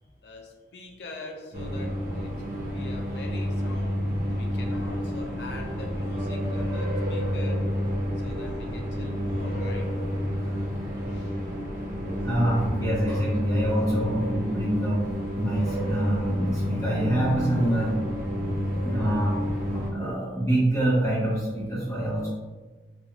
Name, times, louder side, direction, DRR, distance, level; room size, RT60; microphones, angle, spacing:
voice 1, 0.2-4.0 4.3-7.7 8.2-10.0 11.1-11.5, left 2 dB, 70° left, 2 dB, 0.4 m, -44 dB
sound 1, 1.5-19.9, equal, 50° right, 0.8 m, -29 dB
voice 2, 12.0-15.1 15.4-18.1 18.4-19.4 19.7-22.3, right 1 dB, 20° left, -9 dB, 0.8 m, -26 dB
3.6 x 2.3 x 2.9 m, 1.3 s
head